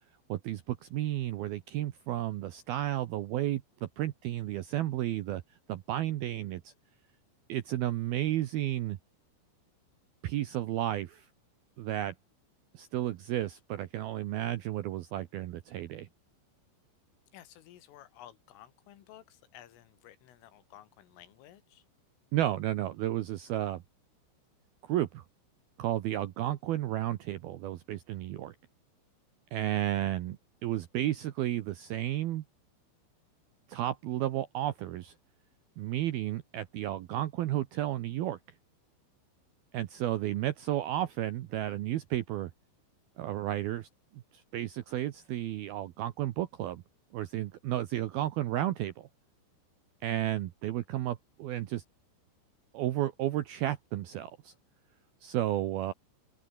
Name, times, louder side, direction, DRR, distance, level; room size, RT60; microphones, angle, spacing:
voice 1, 0.3-5.4 5.7-6.7 7.5-9.0 10.2-11.3 11.8-12.1 12.7-16.1 22.3-23.8 24.8-25.2 25.8-28.6 29.5-32.4 33.7-35.1 35.8-38.4 39.7-42.5 43.2-43.9 44.1-46.8 47.1-49.1 50.0-51.8 52.7-54.5 55.2-55.9, right 13 dB, 75° right, 2.3 m, -32 dB
voice 2, 17.3-21.9, left 12 dB, 85° left, 4.6 m, -54 dB
open air
omnidirectional pair, 5.7 m